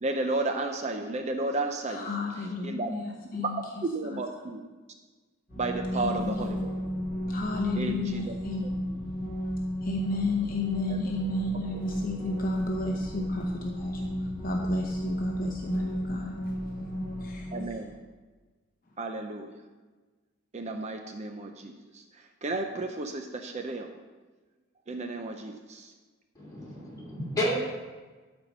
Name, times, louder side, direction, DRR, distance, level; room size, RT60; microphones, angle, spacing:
voice 1, 0.0-2.1 2.6-3.0 3.8-4.6 5.6-6.7 7.8-8.3 10.9-11.0 17.5-18.0 19.0-19.6 20.5-23.9 24.9-25.9, right 2 dB, 35° right, 5 dB, 0.5 m, -33 dB
voice 2, 1.9-3.8 4.1-4.2 5.9-6.7 7.3-8.7 9.8-16.3 17.2-17.8, left 3 dB, 45° left, 0 dB, 0.8 m, -33 dB
sound 1, 5.5-17.6, equal, 10° right, 2.7 m, -33 dB
voice 3, 26.3-27.6, equal, 20° left, -6 dB, 2.9 m, -31 dB
12.0 x 4.4 x 5.4 m, 1.3 s
head